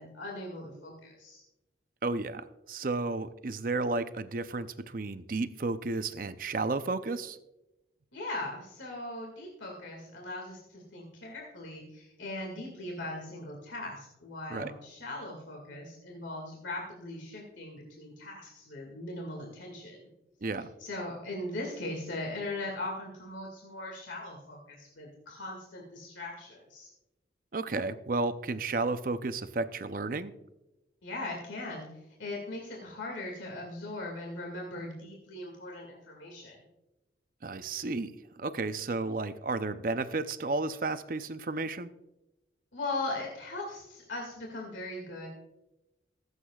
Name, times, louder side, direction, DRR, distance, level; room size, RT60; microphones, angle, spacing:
voice 1, 0.0-1.4 8.1-20.1 20.8-26.9 31.0-31.9 32.2-36.6 42.7-45.3, left 2 dB, 90° left, -1 dB, 2.1 m, -39 dB
voice 2, 2.0-7.4 14.5-14.7 20.4-20.7 27.5-30.3 37.4-38.1 38.4-41.9, right 3 dB, 45° right, 11 dB, 0.6 m, -32 dB
24.0 x 8.1 x 2.4 m, 0.96 s
head